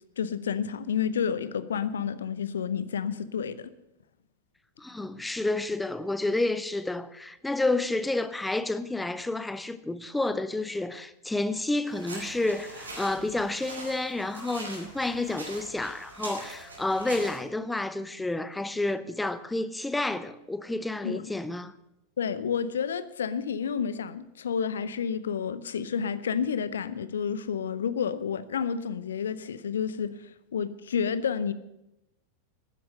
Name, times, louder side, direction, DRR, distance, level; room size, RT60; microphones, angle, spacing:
voice 1, 0.2-3.7 21.0-21.2 22.2-31.5, left 7 dB, 65° left, 0.6 m, -30 dB
voice 2, 4.8-21.7, left 2 dB, 5° left, 0.6 m, -30 dB
sound 1, 11.9-17.4, right 2 dB, 75° right, 4.5 m, -42 dB
12.0 x 10.0 x 6.4 m
figure-of-eight pair, 90°, 0 cm